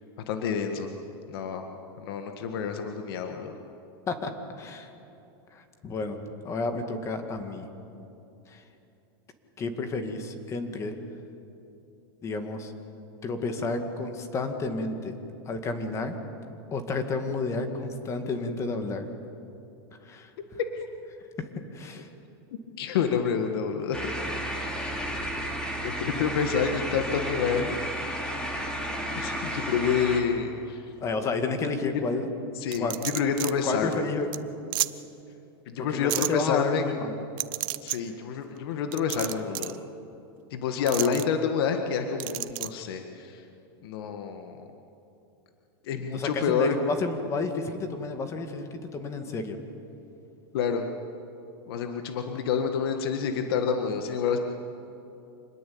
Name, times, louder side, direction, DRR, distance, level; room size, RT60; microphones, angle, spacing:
voice 1, 0.3-0.9 1.3-1.6 2.0-3.5 20.8-20.9 22.8-24.0 25.8-27.7 29.1-30.9 32.6-34.0 35.7-36.8 37.8-39.8 40.5-43.4 43.8-44.6 45.8-46.8 50.5-50.8 51.7-54.4, left 6 dB, 70° left, 5 dB, 1.8 m, -28 dB
voice 2, 4.6-4.9 5.5-6.2 6.4-7.6 8.5-8.6 9.6-10.9 12.2-12.7 13.2-15.1 15.5-16.1 16.7-19.1 20.0-20.3 21.4-21.5 21.7-22.1 31.0-32.3 32.8-32.9 33.6-34.3 35.9-37.2 46.1-49.6, left 3 dB, 20° left, 6 dB, 2.1 m, -31 dB
sound 1, 23.9-30.2, right 1 dB, 5° left, 3.0 m, -32 dB
sound 2, 32.7-33.5 33.9-34.0 34.3-34.4 34.7-34.9 36.1-36.3 37.4-38.0 38.9-39.8 40.9-41.2 42.2-42.7, right 20 dB, 60° right, 0.8 m, -30 dB
26.5 x 20.5 x 8.7 m, 2.8 s
supercardioid pair, 155°, 13 cm